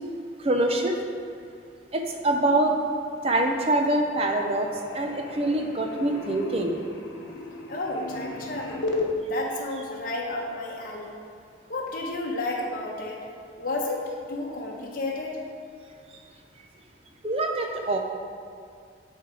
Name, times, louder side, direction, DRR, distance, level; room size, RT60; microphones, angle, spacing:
voice 1, 0.4-1.0 1.9-2.7 3.2-4.7 4.9-6.8 17.2-18.0, right 1 dB, 30° right, 3 dB, 0.6 m, -24 dB
sound 1, 3.1-3.7 3.9-9.1, left 2 dB, 75° left, 1.0 m, -36 dB
voice 2, 7.7-8.8 9.2-11.2 11.7-13.2 13.6-15.4, left 2 dB, 50° left, -3 dB, 0.9 m, -32 dB
10.5 x 4.5 x 3.8 m, 2.3 s
head